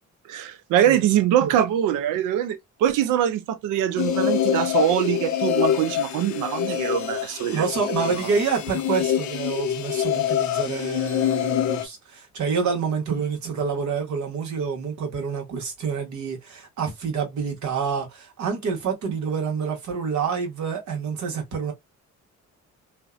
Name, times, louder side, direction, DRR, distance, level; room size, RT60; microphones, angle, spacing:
voice 1, 0.3-7.7 8.2-8.3, right 10 dB, 90° right, 0.5 m, -23 dB
sound 1, 4.0-11.9, left 10 dB, 70° left, 0.6 m, -25 dB
voice 2, 7.5-21.7, right 6 dB, 70° right, 1.0 m, -27 dB
2.6 x 2.1 x 2.3 m
cardioid pair, 90°, 30 cm